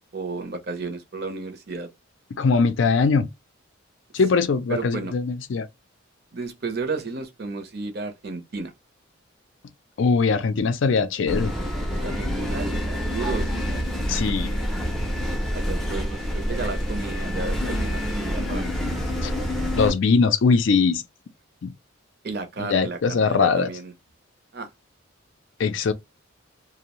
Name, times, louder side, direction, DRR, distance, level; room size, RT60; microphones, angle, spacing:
voice 1, 0.1-1.9 4.3-5.1 6.3-8.7 12.0-14.3 15.5-18.7 22.2-23.9 24.5-24.7, right 3 dB, 50° right, 0.6 m, -33 dB
voice 2, 2.4-3.3 4.1-5.7 10.0-11.5 14.1-14.6 19.2-19.3 19.8-21.0 21.6-21.7 22.6-23.7 25.6-25.9, left 4 dB, 60° left, 0.4 m, -21 dB
sound 1, 11.3-19.9, equal, ahead, 0.5 m, -27 dB
2.6 x 2.0 x 2.9 m
head